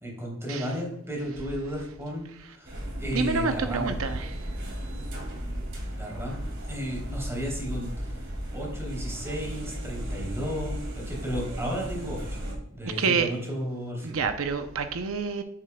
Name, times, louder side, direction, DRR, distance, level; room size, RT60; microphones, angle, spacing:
voice 1, 0.0-3.9 5.9-6.4 6.7-12.4 12.7-14.2, equal, 15° right, -2 dB, 3.2 m, -34 dB
sound 1, 2.6-12.5, equal, 60° right, 2.3 m, -35 dB
voice 2, 3.1-4.4 12.8-13.3 14.0-15.4, right 5 dB, 90° right, 8 dB, 0.6 m, -28 dB
10.0 x 7.5 x 2.2 m, 0.77 s
head